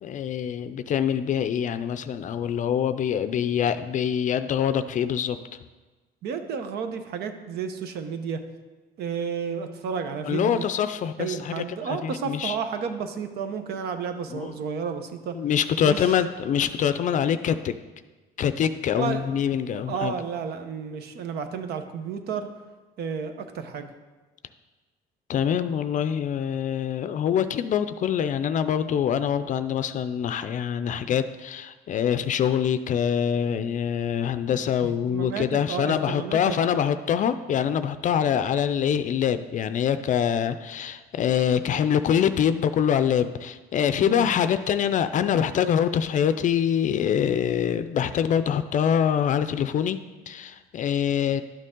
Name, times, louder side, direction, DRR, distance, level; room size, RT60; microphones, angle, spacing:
voice 1, 0.0-5.4 10.2-11.6 11.9-12.6 14.3-14.5 15.3-17.8 18.4-20.1 25.3-51.4, left 8 dB, 50° left, 11 dB, 0.4 m, -25 dB
voice 2, 6.2-8.4 9.0-10.6 11.2-15.4 15.8-16.1 19.0-19.3 19.9-22.5 23.0-23.9 34.8-36.8 44.0-44.3, right 6 dB, 70° right, 8 dB, 0.9 m, -32 dB
11.5 x 6.6 x 3.7 m, 1.3 s
cardioid pair, 110°, 17 cm